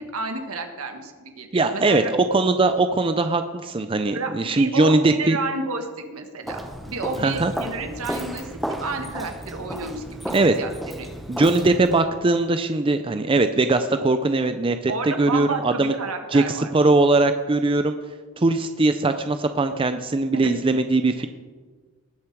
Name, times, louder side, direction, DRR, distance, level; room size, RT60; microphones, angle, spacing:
voice 1, 0.0-2.1 4.1-11.1 14.9-16.7 20.3-20.8, right 3 dB, 75° right, 5 dB, 1.5 m, -31 dB
voice 2, 1.5-5.4 7.2-7.5 10.3-10.5 11.3-15.9 16.3-18.0 18.4-21.3, right 2 dB, 25° right, 9 dB, 0.4 m, -20 dB
Walk footsteps, 6.4-12.0, equal, ahead, 0.8 m, -33 dB
19.0 x 7.1 x 4.6 m, 1.4 s
head